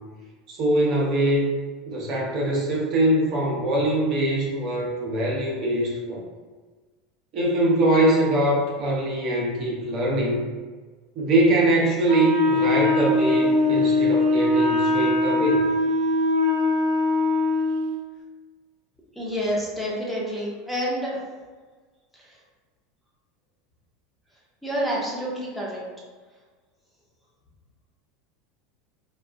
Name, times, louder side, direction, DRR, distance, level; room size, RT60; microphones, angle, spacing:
voice 1, 0.5-1.5 1.9-6.2 7.3-10.4 11.2-15.7, right 1 dB, 50° right, -3 dB, 0.8 m, -22 dB
Wind instrument woodwind instrument, 12.0-17.9, left 2 dB, 65° left, 1.1 m, -21 dB
voice 2, 19.1-21.3 22.1-22.4 24.6-25.8, equal, 5° left, -5 dB, 1.0 m, -28 dB
4.0 x 2.3 x 2.3 m, 1.4 s
hypercardioid pair, 80°, 0 cm